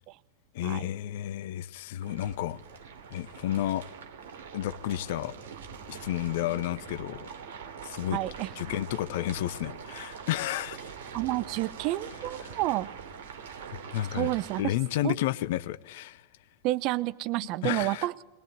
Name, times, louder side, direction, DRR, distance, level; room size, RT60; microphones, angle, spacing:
voice 1, 0.5-2.6 3.1-3.8 4.5-5.3 5.9-7.3 7.8-8.2 8.6-10.9 12.4-12.6 13.9-14.3 14.6-16.2 17.6-18.1, left 13 dB, 50° left, 0.8 m, -31 dB
sound 1, 2.0-14.6, right 6 dB, 55° right, 3.0 m, -43 dB
voice 2, 8.1-8.5 11.1-12.9 14.1-14.7 15.0-15.1 16.6-18.1, right 17 dB, 40° right, 0.8 m, -30 dB
22.0 x 20.5 x 9.5 m
figure-of-eight pair, 90°, 0 cm